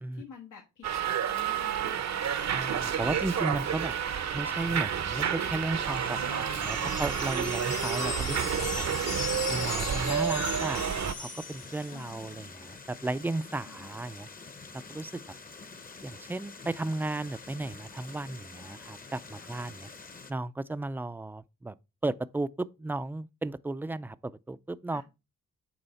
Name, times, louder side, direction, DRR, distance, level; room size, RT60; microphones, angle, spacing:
voice 1, 0.1-2.6 11.9-12.5 13.7-13.9 19.4-19.5 24.9-25.0, left 7 dB, 90° left, 1.4 m, -50 dB
Subway metro underground, 0.8-11.1, right 8 dB, 65° right, 0.7 m, -30 dB
voice 2, 2.5-3.9 4.3-8.8 9.5-14.3 14.9-15.1 16.0-19.9 20.3-21.7 22.0-25.0, right 2 dB, 5° right, 0.3 m, -34 dB
sound 1, 5.8-20.3, left 4 dB, 30° left, 0.8 m, -47 dB
sound 2, 6.5-12.0, left 5 dB, 55° left, 1.2 m, -37 dB
8.9 x 3.4 x 4.1 m
cardioid pair, 85°, 30 cm